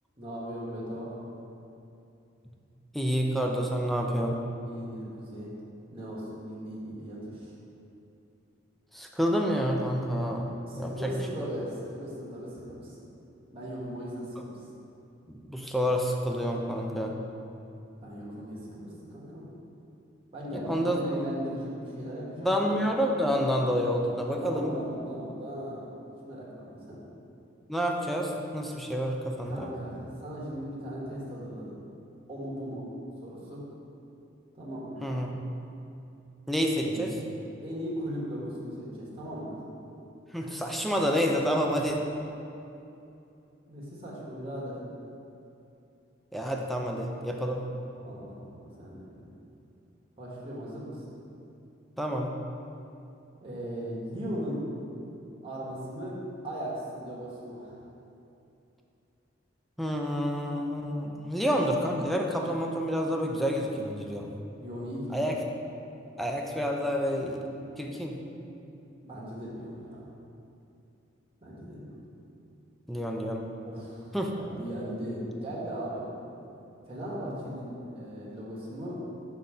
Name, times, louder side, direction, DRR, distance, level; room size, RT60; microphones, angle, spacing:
voice 1, 0.2-1.2 4.6-5.5 5.9-7.5 10.6-13.1 13.5-14.6 18.0-19.4 20.3-22.5 24.2-25.9 26.2-27.0 29.4-31.8 32.3-32.8 33.2-33.6 34.5-35.0 36.8-37.1 37.6-39.6 43.7-44.8 48.0-49.3 50.2-51.0 53.4-54.7 55.4-56.2 56.4-57.8 64.5-65.1 69.0-70.1 71.4-72.0 73.6-76.1 76.8-79.0, equal, 30° right, -7 dB, 1.3 m, -38 dB
voice 2, 2.9-4.4 8.9-11.2 15.3-17.2 20.5-21.0 22.4-24.7 27.7-29.7 35.0-35.4 36.5-37.1 40.3-42.0 46.3-47.7 52.0-52.3 59.8-64.3 65.1-65.3 66.2-67.5 67.7-68.2 72.9-73.5 74.1-74.3, equal, ahead, 0 dB, 0.4 m, -28 dB
5.5 x 3.9 x 4.8 m, 2.8 s
head